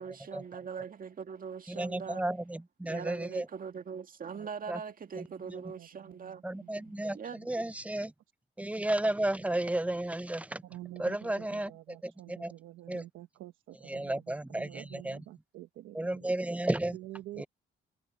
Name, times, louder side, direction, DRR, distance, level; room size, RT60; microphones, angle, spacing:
voice 1, 0.0-2.3 2.8-6.5 7.1-7.4, right 6 dB, 45° right, 1.7 m, -41 dB
voice 2, 1.7-3.5 4.7-4.8 5.2-5.3 6.4-7.2 7.5-8.1 8.6-10.6 11.0-12.5 12.9-13.0 13.9-15.2 15.9-17.0 17.4-17.5, right 1 dB, 5° right, 0.6 m, -33 dB
voice 3, 5.8-6.3 6.6-6.7 7.0-7.1 10.6-16.3 16.9-17.5, right 15 dB, 90° right, 1.2 m, -48 dB
cardioid pair, 90°, 20 cm